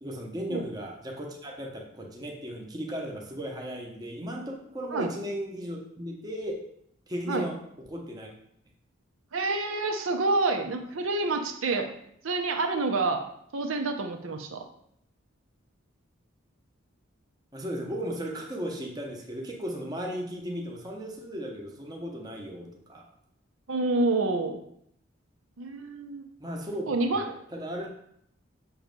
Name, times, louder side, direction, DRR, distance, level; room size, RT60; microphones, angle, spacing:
voice 1, 0.0-6.6 7.1-7.6 7.9-8.3 17.5-23.0 26.4-27.9, equal, 20° right, 0 dB, 0.8 m, -36 dB
voice 2, 9.3-11.9 12.2-13.2 13.5-14.6 23.7-24.6 25.6-26.3 26.9-27.3, right 3 dB, 80° right, 4 dB, 0.7 m, -28 dB
6.4 x 3.1 x 5.2 m, 0.72 s
head